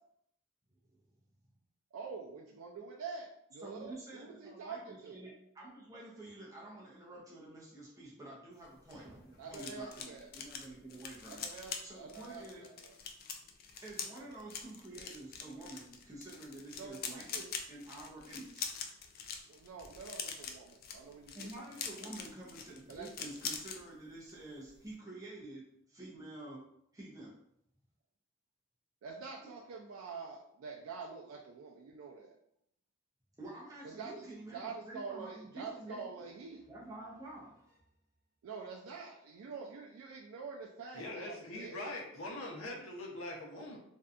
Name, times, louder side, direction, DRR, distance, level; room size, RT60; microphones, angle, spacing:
voice 1, 1.9-5.2 9.4-10.3 11.3-13.0 16.7-17.4 19.5-21.9 22.9-23.3 29.0-32.3 33.8-36.7 38.4-42.0, right 5 dB, 80° right, -1 dB, 0.3 m, -46 dB
voice 2, 3.6-12.7 13.8-18.7 21.3-26.6 26.9-27.3 29.4-29.5 33.4-36.0 36.7-37.8, right 2 dB, 15° right, -6 dB, 0.5 m, -49 dB
sound 1, 8.6-23.8 24.1-24.4 24.7-24.9, left 6 dB, 45° left, 0.3 m, -44 dB
voice 3, 40.9-43.8, left 2 dB, 70° left, -1 dB, 0.7 m, -42 dB
2.6 x 2.2 x 2.4 m, 0.74 s
head